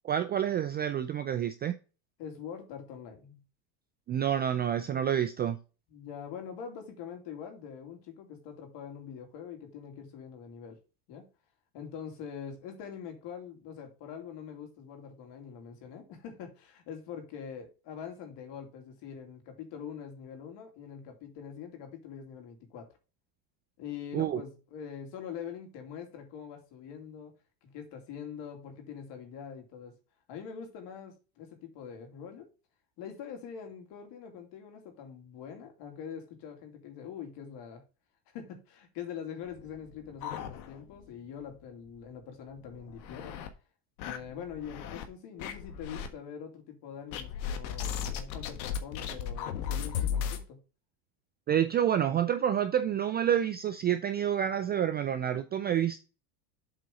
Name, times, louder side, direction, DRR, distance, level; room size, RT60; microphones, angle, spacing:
voice 1, 0.0-1.7 4.1-5.6 24.1-24.4 51.5-56.0, right 9 dB, 25° right, 0.3 m, -28 dB
voice 2, 2.2-3.4 5.9-10.8 11.1-11.3 11.7-22.9 23.8-27.3 27.6-30.0 30.3-32.5 33.0-37.8 38.3-43.3 44.0-50.6, left 7 dB, 55° left, 2.9 m, -44 dB
sound 1, 39.5-41.1 41.4-41.5 41.9-42.0 42.6-43.5 44.0-45.1 45.4-46.1 47.1-50.4, left 8 dB, 85° left, 1.5 m, -36 dB
7.9 x 4.1 x 5.1 m
supercardioid pair, 125°, 50 cm